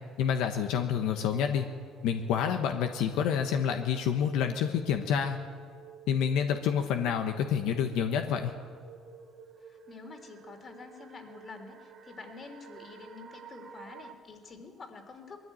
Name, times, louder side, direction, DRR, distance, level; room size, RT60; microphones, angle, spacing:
voice 1, 0.2-1.7 2.0-5.4 6.1-8.5, left 8 dB, 80° left, 6 dB, 1.2 m, -28 dB
sound 1, 1.1-14.1, right 7 dB, 45° right, 1.6 m, -52 dB
voice 2, 9.6-15.5, left 4 dB, 35° left, 5 dB, 3.2 m, -48 dB
21.0 x 14.0 x 9.2 m, 2.1 s
cardioid pair, 115°, 0 cm